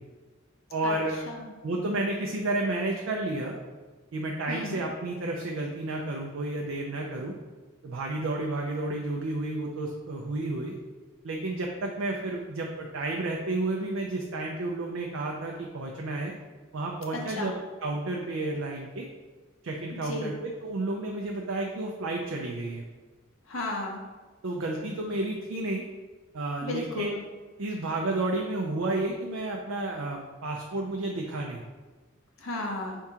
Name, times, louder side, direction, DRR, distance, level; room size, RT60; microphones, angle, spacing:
voice 1, 0.7-1.2 1.6-3.5 4.1-7.4 7.8-10.8 11.2-16.3 16.7-17.5 17.8-19.1 19.6-22.8 24.4-25.8 26.3-27.2 27.6-31.6, right 2 dB, 80° right, 0 dB, 0.5 m, -31 dB
voice 2, 4.5-4.8 17.3-17.5 19.9-20.3 23.5-24.0 26.6-27.2 32.4-33.0, left 1 dB, 85° left, 0 dB, 0.8 m, -34 dB
4.5 x 2.8 x 3.6 m, 1.3 s
head